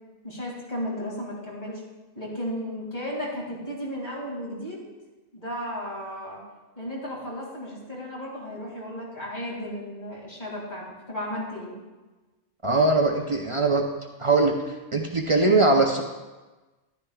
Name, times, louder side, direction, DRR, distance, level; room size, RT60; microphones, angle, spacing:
voice 1, 0.2-1.8 2.2-4.9 5.3-6.4 6.8-11.7, equal, 35° left, -4 dB, 2.5 m, -34 dB
voice 2, 12.6-13.8 14.2-14.6 14.9-16.0, right 3 dB, 45° right, 2 dB, 0.4 m, -21 dB
11.5 x 10.0 x 2.3 m, 1.2 s
omnidirectional pair, 1.4 m